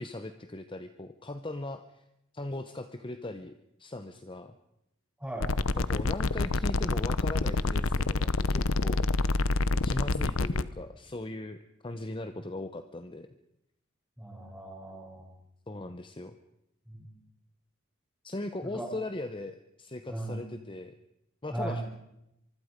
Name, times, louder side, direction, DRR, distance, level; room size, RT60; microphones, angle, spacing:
voice 1, 0.0-2.0 2.3-3.5 3.8-4.6 5.7-9.4 9.8-13.3 15.7-16.4 18.2-21.0 21.4-21.8, left 2 dB, 25° left, 9 dB, 0.8 m, -39 dB
voice 2, 5.2-5.5 14.2-15.3 16.9-17.1 18.6-18.9 20.1-20.4 21.5-21.8, right 1 dB, 5° right, -2 dB, 7.6 m, -37 dB
sound 1, 5.4-10.6, left 3 dB, 75° left, 0.9 m, -27 dB
24.5 x 24.5 x 5.2 m, 0.84 s
head